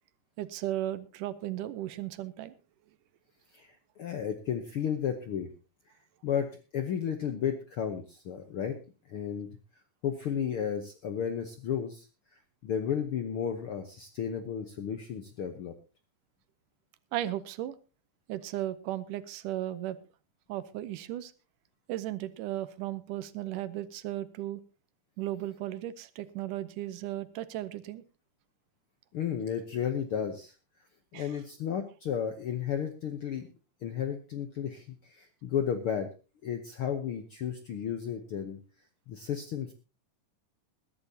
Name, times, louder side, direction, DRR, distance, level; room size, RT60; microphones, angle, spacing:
voice 1, 0.4-2.5 17.1-17.8 18.3-20.0 20.5-21.3 21.9-24.6 25.2-28.0 31.1-31.3, right 13 dB, 80° right, 14 dB, 2.3 m, -35 dB
voice 2, 3.5-5.5 6.2-6.5 6.7-8.8 9.1-9.5 10.0-12.1 12.6-15.7 29.1-30.5 31.1-33.5 33.8-36.1 36.4-38.6 39.1-39.7, left 8 dB, 70° left, 7 dB, 1.3 m, -33 dB
21.0 x 12.0 x 2.8 m, 0.32 s
omnidirectional pair, 3.8 m